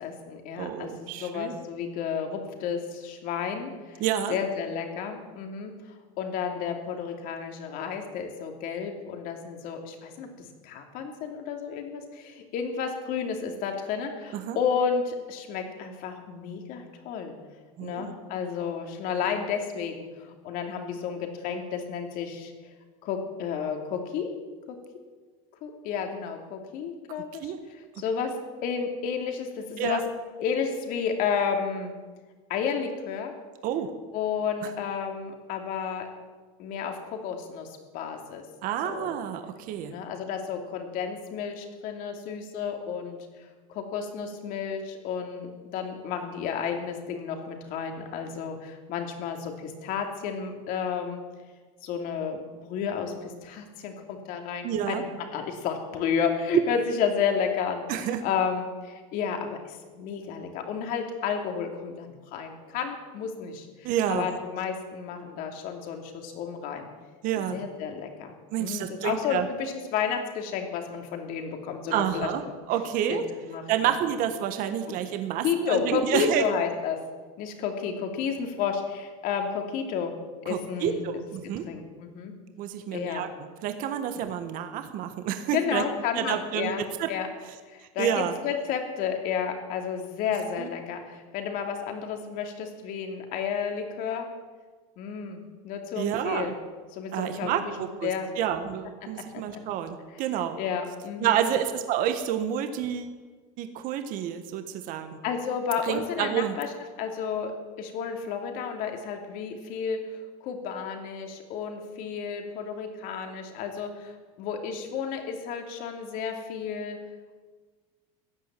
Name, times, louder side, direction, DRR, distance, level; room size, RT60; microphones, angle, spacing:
voice 1, 0.0-4.0 4.3-5.7 6.2-10.3 10.6-17.3 17.8-22.5 23.0-24.3 24.7-24.8 25.6-28.3 28.6-30.0 30.4-31.9 32.5-33.3 34.1-36.1 36.6-38.4 38.8-39.1 39.9-51.2 51.8-55.0 55.3-66.9 67.4-68.3 68.6-72.3 73.1-73.9 75.4-77.0 77.4-80.1 80.4-81.2 81.7-82.3 82.9-83.2 85.5-86.8 87.1-87.3 87.7-94.3 95.0-96.6 96.9-98.3 99.5-99.6 100.6-101.4 105.2-106.7 107.0-107.5 107.8-114.1 114.4-117.0, left 7 dB, 55° left, 4 dB, 2.9 m, -32 dB
voice 2, 0.6-1.5 4.0-4.4 14.3-14.6 17.8-18.1 27.4-27.6 29.8-30.0 33.6-33.9 34.6-34.7 38.6-39.9 54.6-55.0 57.9-58.2 63.8-64.3 67.2-67.6 68.5-69.5 71.9-72.4 72.7-73.2 73.7-76.4 80.5-81.6 82.6-83.3 83.6-85.8 86.1-87.1 88.0-88.3 90.6-90.7 96.0-96.5 97.1-100.6 101.2-103.1 103.6-105.2 105.8-106.5, right 10 dB, 55° right, 8 dB, 1.5 m, -29 dB
16.0 x 10.5 x 7.6 m, 1.4 s
supercardioid pair, 135°, 17 cm